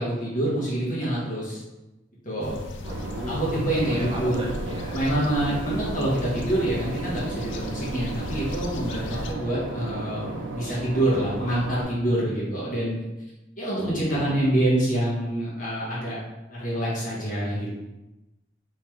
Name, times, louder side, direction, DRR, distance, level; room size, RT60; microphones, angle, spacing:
voice 1, 0.0-1.6 2.2-2.6 3.3-4.5 4.9-13.0 13.6-16.2 16.5-17.7, right 1 dB, 45° left, -7 dB, 1.1 m, -26 dB
sound 1, 2.4-9.3, left 2 dB, 85° left, 0.4 m, -36 dB
voice 2, 2.8-3.4 3.8-5.0 5.5-5.8 13.7-14.3, equal, 30° right, -3 dB, 0.6 m, -37 dB
Boat Water vehicle / Engine, 2.9-11.8, right 2 dB, 75° right, 0.4 m, -35 dB
3.5 x 3.0 x 3.0 m, 1.0 s
head